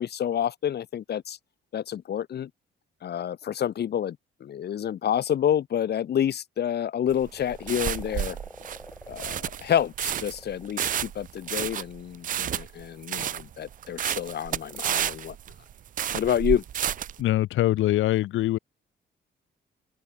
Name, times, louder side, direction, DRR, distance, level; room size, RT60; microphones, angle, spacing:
voice 1, 0.0-1.4 1.7-2.5 3.0-8.4 9.1-15.3 16.1-16.6, left 9 dB, 55° left, 1.1 m, -28 dB
sound 1, 5.2-5.4 7.2-11.6 13.7-14.9 15.9-16.2, left 1 dB, 5° left, 2.2 m, -48 dB
sound 2, 7.1-17.2, right 10 dB, 45° right, 0.4 m, -31 dB
voice 2, 17.2-18.6, left 14 dB, 80° left, 1.0 m, -23 dB
open air
cardioid pair, 90°, 20 cm